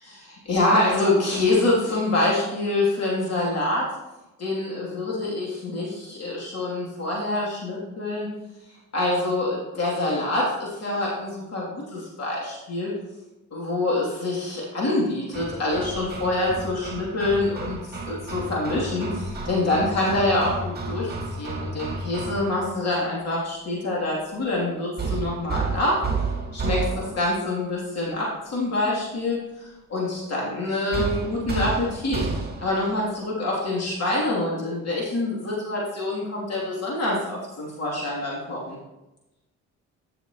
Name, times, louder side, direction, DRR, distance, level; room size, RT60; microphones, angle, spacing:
voice 1, 0.0-3.9 4.4-8.3 8.9-13.0 13.5-26.0 26.5-32.3 32.6-38.8, left 2 dB, 55° left, -5 dB, 3.0 m, -26 dB
Hammer, 15.3-22.8 25.0-27.4 30.9-32.8, right 3 dB, 30° right, 1.8 m, -31 dB
13.5 x 6.5 x 3.0 m, 0.98 s
cardioid pair, 90°, 30 cm